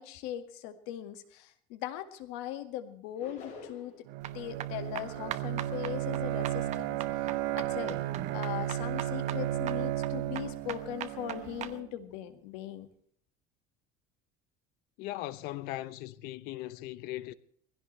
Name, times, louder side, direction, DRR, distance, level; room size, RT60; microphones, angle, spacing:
voice 1, 0.0-4.1 4.3-8.0 8.3-12.9, left 12 dB, 85° left, 1.9 m, -40 dB
sound 1, 3.2-4.1, left 4 dB, 45° left, 6.7 m, -47 dB
Bowed string instrument, 4.1-11.9, right 13 dB, 70° right, 0.9 m, -34 dB
sound 2, 4.2-11.7, right 11 dB, 45° right, 1.0 m, -41 dB
voice 2, 15.0-17.3, left 16 dB, 65° left, 0.9 m, -39 dB
21.5 x 16.0 x 3.3 m
cardioid pair, 155°, 17 cm